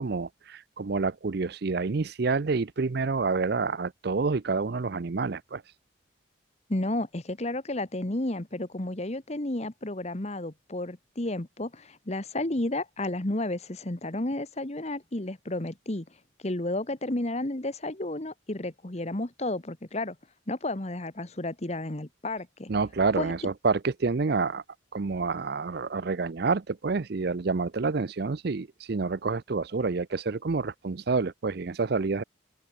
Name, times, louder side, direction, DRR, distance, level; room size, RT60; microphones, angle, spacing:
voice 1, 0.0-5.6 22.7-24.6 24.9-32.2, right 4 dB, 55° right, 0.5 m, -28 dB
voice 2, 6.7-16.1 16.4-20.1 20.5-22.7 23.2-23.3, left 1 dB, 35° left, 1.3 m, -32 dB
open air
head